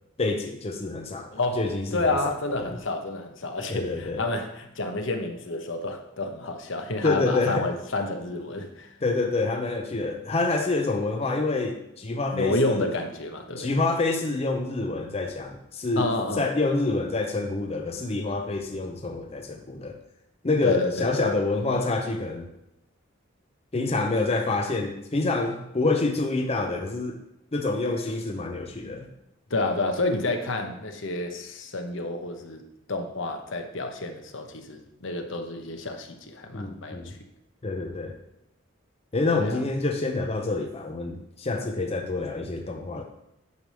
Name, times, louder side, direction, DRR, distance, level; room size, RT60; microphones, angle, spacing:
voice 1, 0.2-1.3 1.6-2.2 2.6-2.8 3.7-4.3 7.0-7.7 9.0-12.9 13.6-16.1 16.4-20.0 20.4-22.5 23.7-27.2 27.5-29.1 36.5-37.1 37.6-38.1 39.1-43.0, left 3 dB, 30° left, 3 dB, 0.6 m, -27 dB
voice 2, 1.3-8.9 12.3-13.7 16.0-16.5 20.6-21.2 29.5-32.6 32.9-37.2 39.3-39.6, left 2 dB, 70° left, 5 dB, 1.1 m, -29 dB
9.5 x 3.4 x 6.8 m, 0.86 s
head